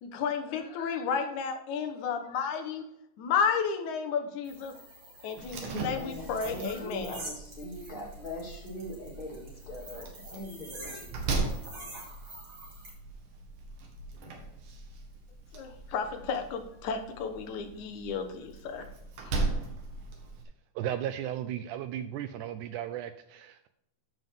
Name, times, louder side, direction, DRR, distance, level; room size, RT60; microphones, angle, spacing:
voice 1, 0.0-2.9 3.2-4.8 5.2-7.2 15.5-18.9 19.2-19.3, left 6 dB, 65° left, 6 dB, 2.3 m, -32 dB
sound 1, 4.4-12.9, right 2 dB, 30° right, 3.1 m, -47 dB
Slam, 5.4-20.4, right 3 dB, 65° right, 3.0 m, -39 dB
voice 2, 5.6-10.9 11.3-11.6, equal, 15° left, -2 dB, 2.0 m, -41 dB
voice 3, 20.8-23.7, right 11 dB, 85° right, 10 dB, 1.8 m, -35 dB
13.5 x 5.6 x 3.6 m, 0.83 s
omnidirectional pair, 4.0 m